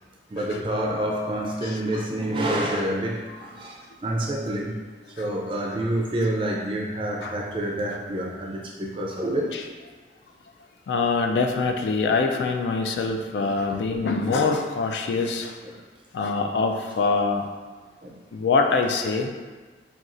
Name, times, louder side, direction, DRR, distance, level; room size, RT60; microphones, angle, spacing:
voice 1, 0.3-4.8 5.2-9.6 13.4-13.6 18.0-18.1, right 1 dB, 30° right, -1 dB, 0.4 m, -28 dB
voice 2, 1.6-2.1 5.2-5.3 7.2-7.4 9.5-9.6 10.9-15.6 16.1-17.5 18.3-19.3, left 4 dB, 75° left, 4 dB, 0.3 m, -24 dB
4.1 x 2.3 x 2.5 m, 1.4 s
head